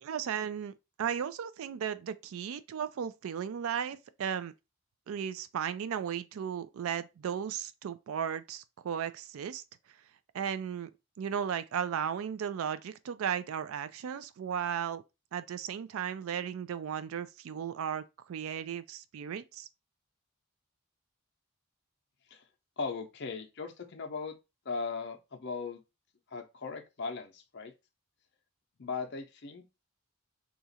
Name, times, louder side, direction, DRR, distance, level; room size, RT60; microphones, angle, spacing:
voice 1, 0.0-4.5 5.1-9.6 10.3-10.9 11.2-15.0 15.3-19.7, right 8 dB, 75° right, 0.3 m, -35 dB
voice 2, 22.8-24.4 24.6-25.8 26.3-27.7 28.8-29.6, left 4 dB, 50° left, 0.6 m, -38 dB
2.8 x 2.4 x 4.1 m
head